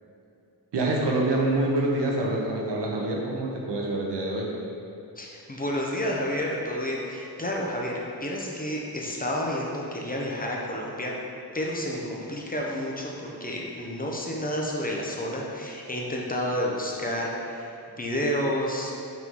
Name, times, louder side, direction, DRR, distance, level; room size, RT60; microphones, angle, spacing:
voice 1, 0.7-4.5, right 2 dB, 85° right, -2 dB, 1.1 m, -26 dB
voice 2, 5.2-11.1 11.5-18.9, equal, 20° left, -2 dB, 0.8 m, -30 dB
5.9 x 4.4 x 3.8 m, 2.6 s
wide cardioid pair, 110°, 40 cm